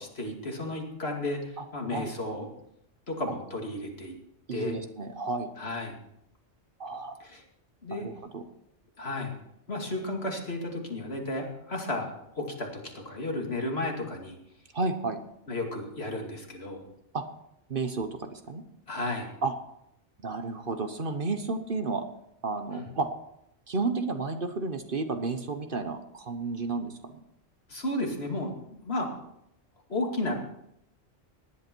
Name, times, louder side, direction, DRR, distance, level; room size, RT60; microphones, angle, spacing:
voice 1, 0.0-2.5 3.1-4.1 4.5-4.8 5.6-6.0 7.2-7.4 7.8-8.1 9.0-9.3 9.7-14.4 15.5-16.8 18.9-19.3 22.7-22.9 27.7-29.1 29.9-30.3, left 2 dB, 60° left, 1 dB, 2.6 m, -33 dB
voice 2, 4.5-5.5 6.8-7.1 7.9-8.4 14.7-15.2 17.1-17.2 17.7-18.6 19.4-19.5 20.2-22.0 22.4-23.1 23.7-27.1, right 3 dB, 50° right, 7 dB, 1.2 m, -32 dB
18.5 x 11.0 x 4.5 m, 0.79 s
omnidirectional pair, 1.2 m